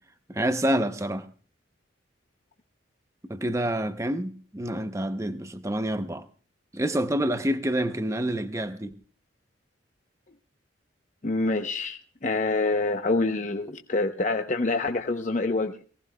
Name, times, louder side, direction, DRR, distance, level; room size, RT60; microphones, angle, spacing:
voice 1, 0.3-1.2 3.3-6.3 6.7-8.9, right 1 dB, 15° right, 0.7 m, -27 dB
voice 2, 11.2-15.8, left 3 dB, 40° left, 0.7 m, -26 dB
22.0 x 17.5 x 2.2 m
head